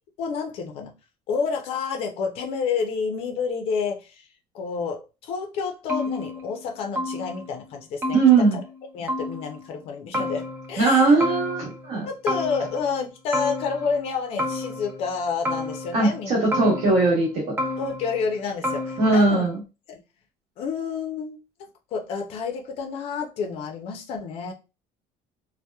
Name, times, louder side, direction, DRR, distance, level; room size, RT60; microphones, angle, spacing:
voice 1, 0.2-0.9 1.3-4.3 4.5-8.6 8.9-11.1 12.0-16.4 17.8-19.5 19.9-20.0 20.6-21.4 21.9-24.5, left 5 dB, 45° left, 0.5 m, -29 dB
sound 1, 5.9-6.7 6.9-7.6 8.0-8.8 9.1-9.7 10.1-10.9 11.2-11.9 12.3-13.0 13.3-14.1 14.4-15.1 15.4-16.2 16.5-17.2 17.6-18.3 18.6-19.4, left 2 dB, 15° right, 0.3 m, -31 dB
voice 2, 8.1-8.6 10.8-12.1 15.9-17.6 19.0-19.6, right 3 dB, 50° right, 1.1 m, -19 dB
2.8 x 2.1 x 2.2 m
cardioid pair, 180°, 14 cm